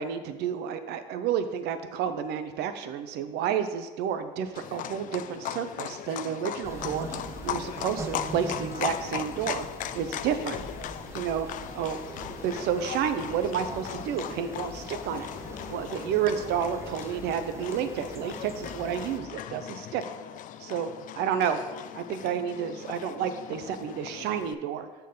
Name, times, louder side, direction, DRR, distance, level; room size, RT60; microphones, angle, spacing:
voice 1, 0.0-7.1 7.4-9.7 9.9-10.6 11.1-11.5 11.7-12.0 12.4-15.3 15.7-20.0 20.6-20.9 21.1-21.6 21.9-24.9, right 8 dB, 65° right, 10 dB, 0.7 m, -30 dB
Livestock farm animals working animals, 4.5-24.5, left 11 dB, 45° left, 0.4 m, -38 dB
sound 1, 6.6-19.2, right 2 dB, 15° right, 0.7 m, -42 dB
sound 2, 12.0-17.3, left 2 dB, 25° left, 0.9 m, -47 dB
6.1 x 4.5 x 5.3 m, 1.3 s
supercardioid pair, 80°, 19 cm